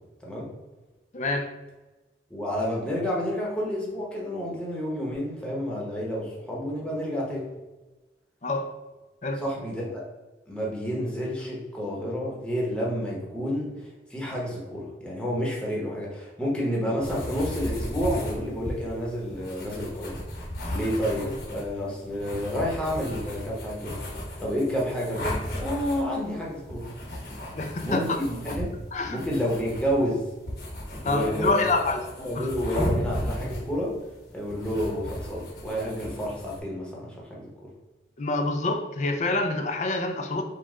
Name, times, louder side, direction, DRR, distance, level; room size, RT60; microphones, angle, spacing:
voice 1, 1.1-1.5 8.4-8.7 9.2-9.4 27.5-28.2 28.9-29.2 31.0-32.0 32.4-32.5 38.2-40.4, left 2 dB, 40° left, 6 dB, 0.5 m, -26 dB
voice 2, 2.3-7.5 9.4-10.0 10.5-20.4 20.7-26.9 27.8-28.7 29.1-30.2 31.0-31.6 32.2-33.9 34.3-37.7, equal, 5° left, -4 dB, 1.0 m, -30 dB
sound 1, 17.0-36.6, equal, 60° left, 1.1 m, -35 dB
5.1 x 2.3 x 3.7 m, 1.2 s
head